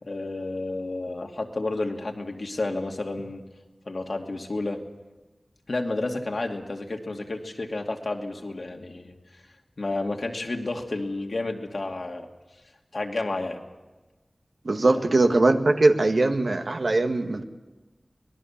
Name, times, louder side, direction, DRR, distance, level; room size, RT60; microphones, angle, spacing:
voice 1, 0.0-3.4 3.9-4.8 5.7-9.2 9.8-12.3 12.9-13.6 15.0-15.1, left 2 dB, 70° left, 3 dB, 2.4 m, -31 dB
voice 2, 14.6-17.4, right 2 dB, 70° right, 6 dB, 1.7 m, -21 dB
25.0 x 19.5 x 7.3 m, 1.2 s
wide cardioid pair, 55°, 0 cm